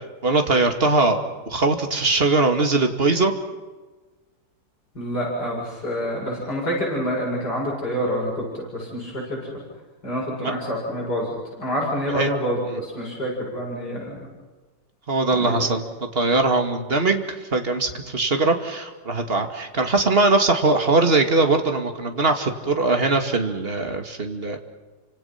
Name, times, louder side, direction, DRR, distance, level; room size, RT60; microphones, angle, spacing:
voice 1, 0.2-1.2 1.5-3.3 10.4-10.5 12.1-12.3 12.7-12.8 15.1-15.9 16.1-17.2 17.5-24.6, right 3 dB, 30° right, 5 dB, 2.5 m, -21 dB
voice 2, 4.9-9.6 10.0-11.3 11.6-14.2 15.3-15.7, equal, 60° left, -3 dB, 8.4 m, -27 dB
29.5 x 26.5 x 5.9 m, 1.3 s
omnidirectional pair, 2.0 m